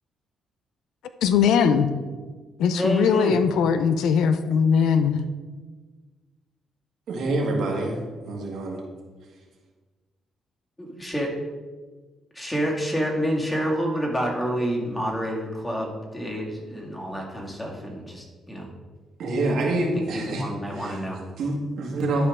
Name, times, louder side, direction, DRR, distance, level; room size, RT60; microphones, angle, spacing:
voice 1, 1.2-1.9 2.6-5.2, left 6 dB, 80° left, 10 dB, 0.5 m, -20 dB
voice 2, 2.7-3.4 10.8-11.3 12.3-18.7 19.9-21.2, equal, 15° left, -1 dB, 2.0 m, -28 dB
voice 3, 7.1-8.0 8.2-8.8 19.2-20.5 20.7-21.0 21.4-22.3, right 2 dB, 70° right, 0 dB, 1.8 m, -26 dB
11.5 x 4.8 x 3.6 m, 1.4 s
cardioid pair, 90°, 0 cm